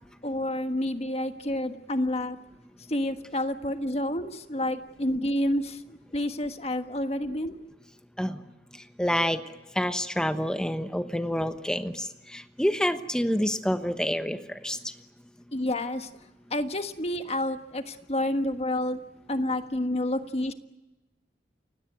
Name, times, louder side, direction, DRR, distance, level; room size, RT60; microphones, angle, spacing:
voice 1, 0.2-2.4 2.9-7.6 15.5-16.1 16.5-19.0 19.3-20.5, left 1 dB, 35° left, 8 dB, 1.4 m, -29 dB
voice 2, 8.7-9.4 9.7-14.9, equal, 5° left, 9 dB, 1.1 m, -28 dB
29.5 x 17.5 x 9.4 m, 1.1 s
head